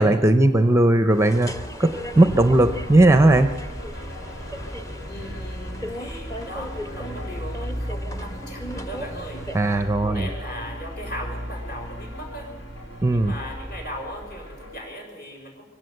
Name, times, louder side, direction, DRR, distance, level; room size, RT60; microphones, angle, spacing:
voice 1, 0.0-3.5 9.5-10.3 13.0-13.3, right 2 dB, 15° right, 9 dB, 0.6 m, -18 dB
sound 1, 1.1-10.0, equal, 15° left, 1.1 m, -37 dB
sound 2, 1.9-14.8, equal, 65° left, 4.1 m, -35 dB
voice 2, 5.1-9.4 10.0-12.6 13.1-15.6, equal, 45° left, 2 dB, 5.5 m, -38 dB
24.0 x 17.5 x 7.9 m, 1.2 s
head